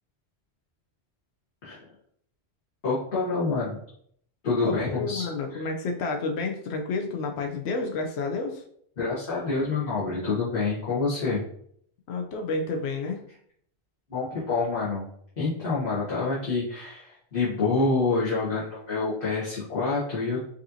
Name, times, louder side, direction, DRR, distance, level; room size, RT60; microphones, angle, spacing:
voice 1, 2.8-3.8 4.4-5.2 5.5-5.6 9.0-11.4 14.1-15.1 15.4-20.4, left 3 dB, 55° left, -9 dB, 1.4 m, -27 dB
voice 2, 4.6-8.6 12.1-13.2, left 3 dB, 80° left, 2 dB, 0.9 m, -30 dB
5.1 x 2.8 x 2.6 m, 0.64 s
omnidirectional pair, 1.1 m